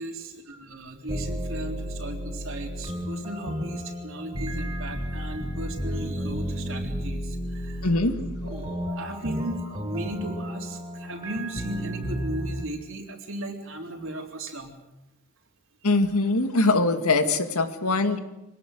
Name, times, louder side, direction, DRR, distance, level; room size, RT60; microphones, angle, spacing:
voice 1, 0.0-7.9 8.4-14.7, right 1 dB, 60° right, 3 dB, 3.7 m, -36 dB
sound 1, 1.1-12.6, equal, 20° right, 3.3 m, -32 dB
voice 2, 7.8-8.1 8.4-8.5 15.8-18.2, left 2 dB, 85° left, 7 dB, 2.2 m, -22 dB
24.5 x 18.5 x 7.9 m, 0.93 s
head